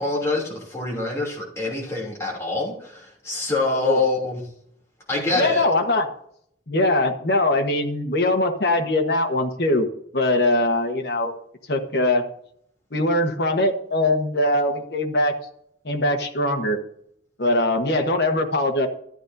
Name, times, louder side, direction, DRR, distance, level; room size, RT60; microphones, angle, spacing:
voice 1, 0.0-4.4 5.1-5.6, left 3 dB, 15° left, -4 dB, 3.0 m, -25 dB
voice 2, 5.3-6.1 6.7-9.9 10.1-11.3 11.7-12.2 12.9-15.3 15.8-16.8 17.4-18.9, left 1 dB, 60° left, 4 dB, 1.3 m, -21 dB
13.0 x 10.0 x 2.7 m, 0.68 s
head